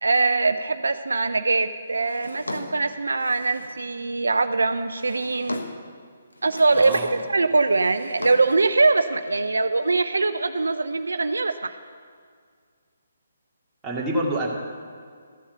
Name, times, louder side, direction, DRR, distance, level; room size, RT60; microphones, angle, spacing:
voice 1, 0.0-5.6 6.4-11.8, right 3 dB, 75° right, 10 dB, 0.5 m, -22 dB
Drawer open or close, 2.0-3.9 4.7-5.9 6.3-7.2 7.5-8.7, left 2 dB, 80° left, 1.1 m, -38 dB
voice 2, 6.7-7.2 13.8-14.5, right 1 dB, 10° right, -5 dB, 2.1 m, -27 dB
14.0 x 7.1 x 6.7 m, 2.1 s
figure-of-eight pair, 140°, 0 cm